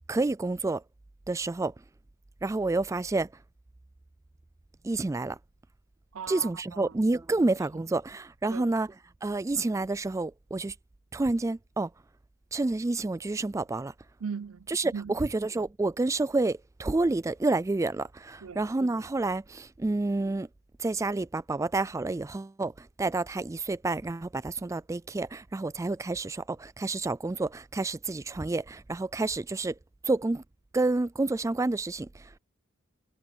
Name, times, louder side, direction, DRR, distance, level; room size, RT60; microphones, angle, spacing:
voice 1, 0.1-0.8 1.3-1.7 2.4-3.3 4.8-5.4 6.3-8.9 9.2-10.7 11.1-11.9 12.5-13.9 14.7-20.5 20.8-29.8 30.0-30.4 30.7-32.3, right 2 dB, 15° right, 0.3 m, -29 dB
voice 2, 6.1-6.9 8.5-8.7 14.2-15.2 18.4-18.7, right 6 dB, 80° right, 0.5 m, -39 dB
head